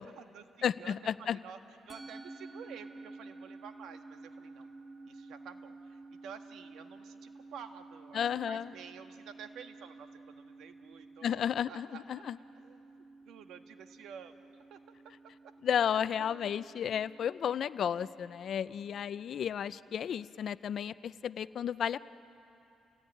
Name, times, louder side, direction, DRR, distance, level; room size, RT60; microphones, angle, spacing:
voice 1, 0.0-1.6 1.8-4.7 5.0-8.2 8.5-12.2 12.5-12.8 13.3-15.1 15.4-15.5 15.9-16.7, right 7 dB, 80° right, 7 dB, 1.5 m, -51 dB
voice 2, 0.6-1.4 8.1-8.7 11.2-12.4 15.6-22.0, left 8 dB, 60° left, 16 dB, 0.5 m, -33 dB
Musical instrument, 1.9-20.4, right 3 dB, 20° right, 2.2 m, -52 dB
29.5 x 18.0 x 10.0 m, 2.8 s
cardioid pair, 90°, 0 cm